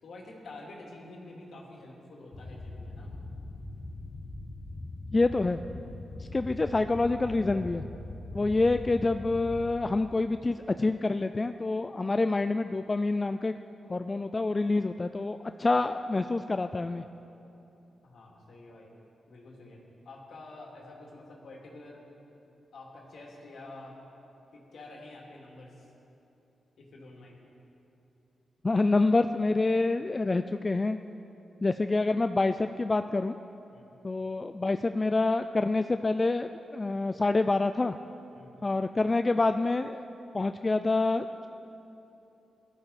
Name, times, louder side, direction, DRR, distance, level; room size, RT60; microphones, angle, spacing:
voice 1, 0.0-3.2 6.2-6.5 18.0-18.9 19.3-19.8 20.0-22.0 22.7-24.0 24.5-25.9 26.8-27.3 33.7-33.9 38.3-38.6, left 2 dB, 75° left, -2 dB, 2.5 m, -48 dB
sound 1, 2.3-9.7, left 2 dB, 50° left, 1.7 m, -41 dB
voice 2, 5.1-5.6 6.2-7.8 8.3-13.5 13.9-17.0 28.6-31.0 31.6-33.3 34.0-38.0 38.6-40.0 40.3-41.5, left 3 dB, 30° left, 9 dB, 0.3 m, -27 dB
17.0 x 11.5 x 4.2 m, 2.9 s
cardioid pair, 95°, 0 cm